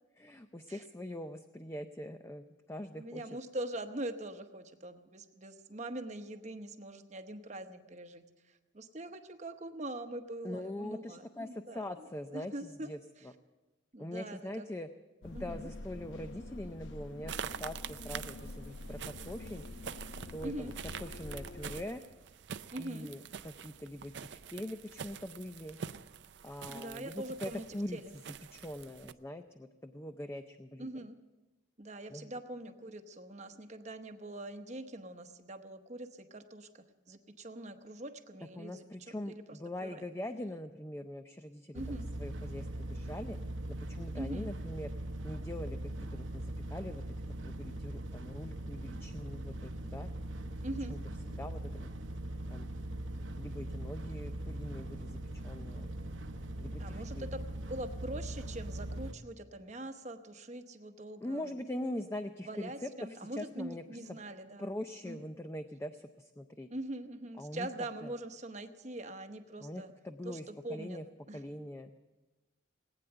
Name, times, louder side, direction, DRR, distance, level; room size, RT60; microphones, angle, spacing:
voice 1, 0.2-3.2 10.4-13.0 13.2-13.3 14.0-14.9 15.2-19.6 20.3-20.7 21.0-22.0 22.8-25.8 26.4-28.0 28.3-30.9 32.1-32.4 38.5-43.4 43.7-44.9 45.2-47.0 47.4-50.1 50.9-51.0 51.4-51.9 52.5-52.7 53.4-55.9 56.6-57.3 61.2-64.2 64.6-66.7 67.4-67.7 68.0-68.1 69.6-71.0 71.3-71.9, left 1 dB, 15° left, 8 dB, 0.4 m, -43 dB
voice 2, 2.9-11.8 12.3-12.9 13.9-14.7 15.3-15.7 20.4-20.7 22.7-23.1 26.7-27.6 27.9-28.1 30.8-31.2 31.8-40.0 41.7-42.1 44.1-44.5 50.6-50.9 56.8-61.6 62.4-64.7 65.0-65.2 66.7-69.9 70.2-71.0 71.3-71.4, right 1 dB, 35° right, 8 dB, 0.9 m, -43 dB
sound 1, 15.2-21.8, left 2 dB, 75° left, 0.9 m, -46 dB
sound 2, 17.3-29.1, right 7 dB, 65° right, 0.5 m, -46 dB
sound 3, 41.7-59.1, right 1 dB, 80° right, 0.8 m, -41 dB
19.0 x 9.2 x 7.8 m, 1.2 s
head